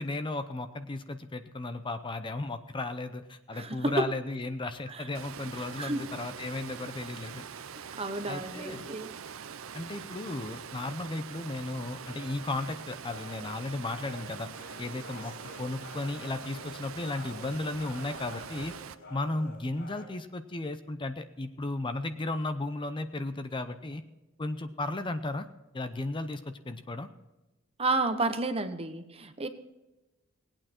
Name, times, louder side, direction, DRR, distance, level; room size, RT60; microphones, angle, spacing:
voice 1, 0.0-7.5 8.3-8.9 9.7-14.5 14.8-18.7 19.1-24.0 24.4-25.5 25.7-27.1, left 2 dB, 25° left, 9 dB, 0.6 m, -35 dB
voice 2, 3.5-4.1 4.9-5.0 5.8-6.1 7.7-9.1 27.8-29.5, right 2 dB, 30° right, 9 dB, 1.0 m, -31 dB
Water, 5.1-18.9, right 7 dB, 85° right, 0.6 m, -44 dB
sound 1, 12.1-20.1, left 2 dB, 60° left, 3.9 m, -48 dB
19.0 x 8.9 x 4.4 m, 1.0 s
head